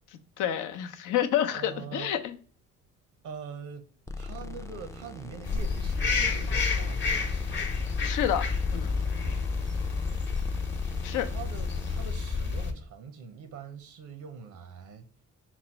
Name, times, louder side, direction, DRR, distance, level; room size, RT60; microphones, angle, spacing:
voice 1, 0.4-2.3 8.0-8.9 11.0-11.3, left 10 dB, 85° left, 0.6 m, -29 dB
voice 2, 1.5-2.1 3.2-3.9 4.2-7.5 11.2-15.1, right 6 dB, 75° right, 0.7 m, -43 dB
sound 1, 4.1-12.1, left 4 dB, 10° left, 0.4 m, -40 dB
sound 2, 5.4-12.7, left 4 dB, 40° left, 0.9 m, -29 dB
4.3 x 2.0 x 4.2 m
cardioid pair, 90°, 30 cm